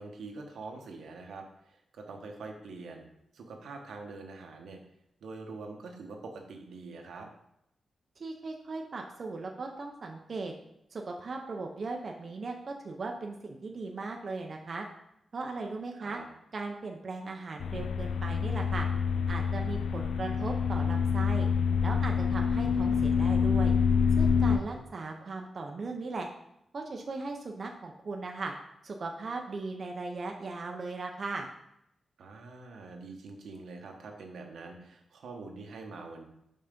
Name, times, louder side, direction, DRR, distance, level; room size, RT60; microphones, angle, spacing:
voice 1, 0.0-3.1 3.3-4.8 5.2-7.3 15.9-16.2 24.4-24.8 32.2-36.2, right 3 dB, 80° right, 3 dB, 1.0 m, -45 dB
voice 2, 8.2-10.5 10.9-14.9 15.3-16.2 16.5-18.9 19.3-21.5 21.8-23.7 24.2-26.3 26.7-28.5 28.8-31.5, right 3 dB, 40° right, 2 dB, 0.5 m, -38 dB
sound 1, 17.6-24.6, left 6 dB, 80° left, 0.4 m, -27 dB
5.5 x 3.9 x 5.1 m, 0.80 s
wide cardioid pair, 175°, 0 cm